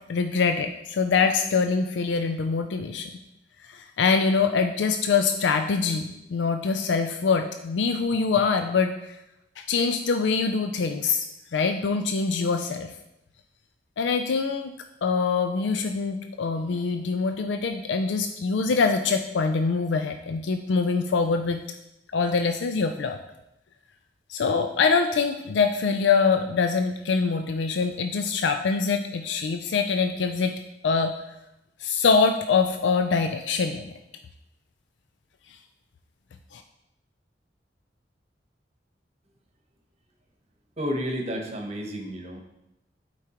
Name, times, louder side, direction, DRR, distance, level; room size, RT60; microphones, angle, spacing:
voice 1, 0.1-3.1 3.7-8.9 9.6-12.9 14.0-14.7 15.0-21.6 22.1-23.2 24.3-30.5 30.8-31.1 31.8-33.9 36.5-36.6, left 5 dB, 90° left, 6 dB, 0.4 m, -24 dB
voice 2, 40.8-42.4, equal, 35° right, 2 dB, 0.9 m, -31 dB
8.4 x 4.6 x 2.9 m, 0.86 s
head